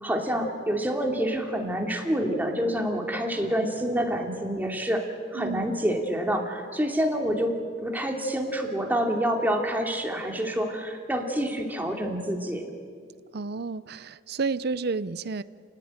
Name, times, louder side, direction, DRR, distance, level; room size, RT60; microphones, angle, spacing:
voice 1, 0.0-5.0 5.3-7.5 7.8-12.7, equal, 10° right, 1 dB, 2.8 m, -27 dB
voice 2, 13.3-15.4, right 4 dB, 60° right, 15 dB, 0.6 m, -30 dB
28.5 x 19.5 x 9.0 m, 2.1 s
head